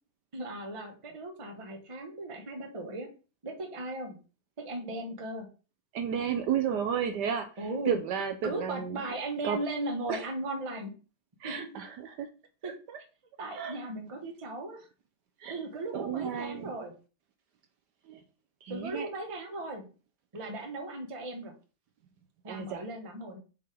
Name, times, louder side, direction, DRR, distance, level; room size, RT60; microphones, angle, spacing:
voice 1, 0.3-3.1 3.4-4.2 4.6-5.5 7.6-8.0 8.4-10.9 11.4-11.8 12.6-12.7 13.4-14.9 15.5-16.9 18.7-19.9 20.3-21.5 22.4-23.4, right 2 dB, 25° right, 3 dB, 0.8 m, -37 dB
voice 2, 5.9-7.5 7.9-9.0 9.4-9.6 10.1-10.2 11.4-12.3 12.6-13.0 13.6-13.8 15.4-15.6 15.9-16.7 18.1-18.2 18.6-19.1 22.4-22.8, right 8 dB, 70° right, 7 dB, 1.1 m, -32 dB
7.6 x 3.7 x 3.4 m, 0.36 s
omnidirectional pair, 2.1 m